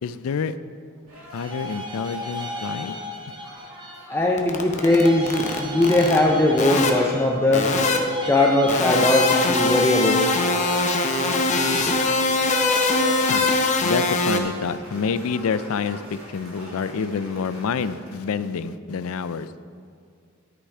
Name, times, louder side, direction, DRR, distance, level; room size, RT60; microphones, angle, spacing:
voice 1, 0.0-0.5 1.3-3.0 13.3-13.5 13.8-19.5, left 5 dB, 70° left, 14 dB, 0.4 m, -27 dB
sound 1, 1.1-5.1 5.4-7.2 7.6-8.4 8.7-18.1, equal, 75° right, 2.7 m, -42 dB
sound 2, 1.3-4.1 4.8-7.6 8.1-11.0, equal, 20° right, 0.9 m, -35 dB
voice 2, 4.1-7.7 8.3-10.2, left 1 dB, 10° left, -1 dB, 0.5 m, -20 dB
sound 3, 4.4-6.2 6.6-6.9 7.5-8.0 8.7-14.4, left 3 dB, 35° left, 0.8 m, -22 dB
11.0 x 6.6 x 4.8 m, 2.3 s
head